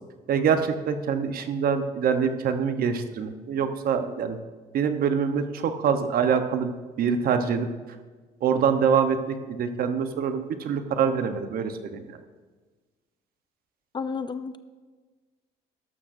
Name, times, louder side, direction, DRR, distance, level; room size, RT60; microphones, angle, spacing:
voice 1, 0.3-4.4 4.7-6.7 7.0-7.7 8.4-12.1, right 6 dB, 60° right, 8 dB, 1.0 m, -25 dB
voice 2, 13.9-14.6, left 5 dB, 25° left, 12 dB, 0.5 m, -31 dB
12.5 x 12.0 x 2.6 m, 1.4 s
cardioid pair, 110°, 17 cm